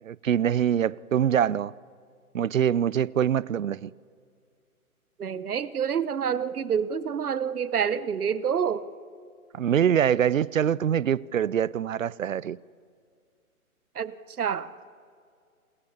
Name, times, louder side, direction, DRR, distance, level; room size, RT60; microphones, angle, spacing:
voice 1, 0.0-1.7 2.3-3.9 9.5-12.6, right 9 dB, 65° right, 0.6 m, -24 dB
voice 2, 5.2-8.9 13.9-14.7, right 7 dB, 85° right, 1.2 m, -28 dB
28.0 x 21.5 x 7.2 m
hypercardioid pair, 175°, 44 cm